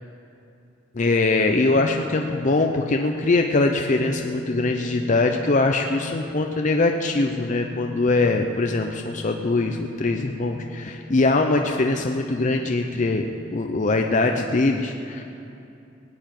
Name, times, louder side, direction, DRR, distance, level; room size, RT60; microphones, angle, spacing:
voice 1, 0.9-13.3 13.5-15.2, left 2 dB, 40° left, 3 dB, 0.6 m, -22 dB
sound 1, 1.6-14.4, left 3 dB, 5° left, 1.8 m, -39 dB
18.5 x 8.0 x 9.0 m, 2.7 s
head